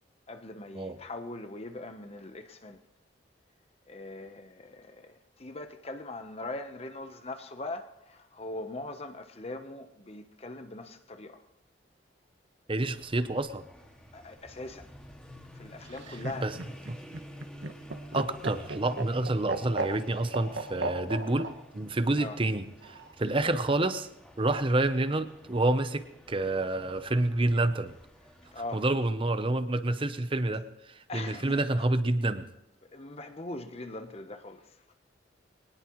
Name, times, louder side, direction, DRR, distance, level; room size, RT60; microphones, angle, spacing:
voice 1, 0.3-2.8 3.9-11.4 14.1-14.9 15.6-16.5 22.2-22.4 28.5-28.8 31.1-31.9 32.8-34.8, left 2 dB, 35° left, 0.9 m, -41 dB
voice 2, 12.7-13.7 16.4-16.5 16.9-17.0 18.1-24.1 24.4-27.9 28.7-32.5, right 2 dB, 30° right, 0.7 m, -28 dB
sound 1, 12.8-28.9, equal, 5° left, 2.1 m, -51 dB
Laughter, 15.8-21.5 22.8-23.4, right 3 dB, 70° right, 1.2 m, -35 dB
23.0 x 19.0 x 3.1 m
head